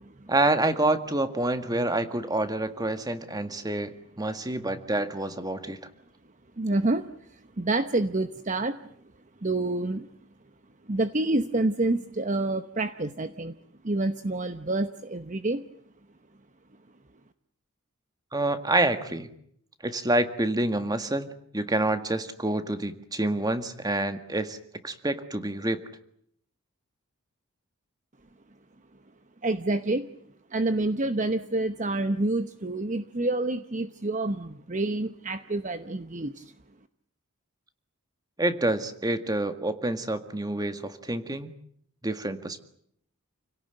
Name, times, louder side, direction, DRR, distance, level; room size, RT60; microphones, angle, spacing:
voice 1, 0.3-5.8 18.3-19.3 19.8-24.6 24.8-25.8 38.4-41.5 42.0-42.6, right 2 dB, 15° right, 9 dB, 1.8 m, -27 dB
voice 2, 6.6-8.8 9.4-10.1 10.9-13.5 13.8-15.6 29.4-30.1 30.5-36.5, right 2 dB, 35° right, 10 dB, 1.0 m, -28 dB
29.5 x 17.5 x 9.1 m, 0.68 s
head